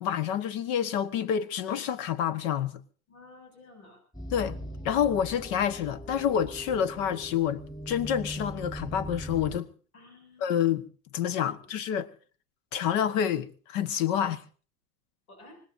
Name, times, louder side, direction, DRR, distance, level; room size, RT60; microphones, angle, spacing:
voice 1, 0.0-2.8 4.3-4.6 4.8-9.7 10.4-10.8 11.1-12.1 12.7-14.4, left 9 dB, 60° left, 1.5 m, -28 dB
voice 2, 3.1-4.0 9.9-10.5 11.4-11.7 15.3-15.6, left 2 dB, 85° left, 7.5 m, -52 dB
sound 1, 4.1-9.6, equal, 10° left, 4.6 m, -40 dB
25.0 x 19.5 x 2.8 m
hypercardioid pair, 100°, 42 cm